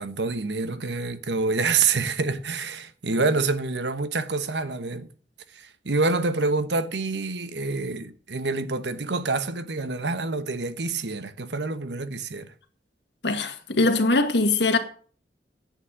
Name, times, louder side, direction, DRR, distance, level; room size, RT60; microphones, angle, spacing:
voice 1, 0.0-5.1 5.5-12.5, right 3 dB, 75° right, 1.1 m, -27 dB
voice 2, 13.2-14.8, left 2 dB, 70° left, 1.9 m, -21 dB
10.0 x 8.6 x 7.5 m
head